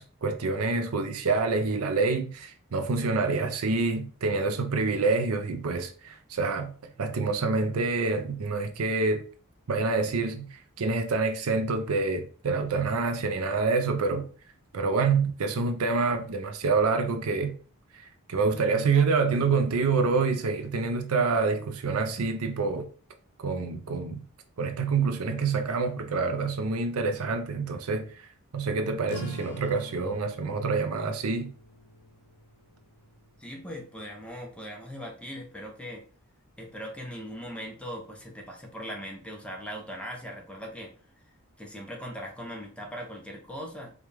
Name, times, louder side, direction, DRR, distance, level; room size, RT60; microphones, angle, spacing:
voice 1, 0.0-6.7 7.0-9.2 9.7-14.3 14.7-17.5 17.9-22.9 23.4-24.2 24.6-28.3 28.5-31.5, right 4 dB, 75° right, 0.5 m, -27 dB
sound 1, 29.0-34.1, left 2 dB, 75° left, 0.6 m, -46 dB
voice 2, 33.4-36.0 36.6-40.9 41.6-43.9, equal, 5° left, 0.8 m, -39 dB
4.6 x 2.4 x 3.3 m
head